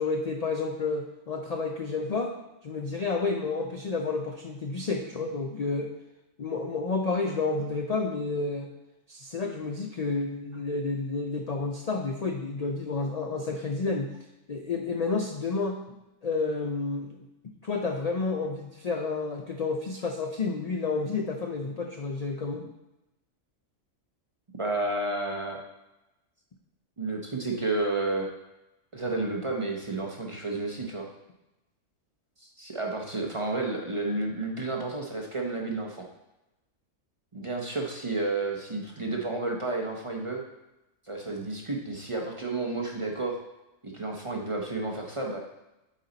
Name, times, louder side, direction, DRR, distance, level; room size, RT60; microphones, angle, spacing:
voice 1, 0.0-2.3 2.6-5.9 6.4-8.7 9.1-14.1 14.5-15.8 16.2-17.1 17.4-22.7, left 3 dB, 60° left, 2 dB, 0.4 m, -30 dB
voice 2, 24.6-25.6 27.0-28.3 28.9-31.1 32.4-36.0 37.3-40.4 41.1-43.4 43.8-45.4, right 2 dB, 30° right, 0 dB, 0.6 m, -31 dB
8.3 x 4.2 x 3.9 m, 0.96 s
omnidirectional pair, 1.4 m